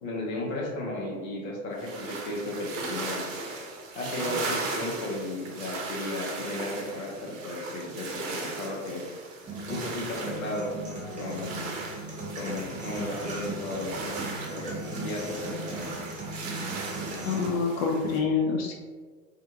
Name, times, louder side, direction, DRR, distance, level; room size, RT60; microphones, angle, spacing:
voice 1, 0.0-3.2 3.9-9.0 9.7-10.7 11.2-11.7 12.3-16.0, left 2 dB, 85° left, -3 dB, 0.9 m, -34 dB
sound 1, 1.8-18.2, right 3 dB, 70° right, 0.7 m, -38 dB
sound 2, 9.5-17.5, right 2 dB, 20° right, 0.8 m, -38 dB
voice 2, 17.2-18.7, left 5 dB, 40° left, 0 dB, 0.5 m, -26 dB
2.5 x 2.4 x 2.7 m, 1.5 s
hypercardioid pair, 90°, 41 cm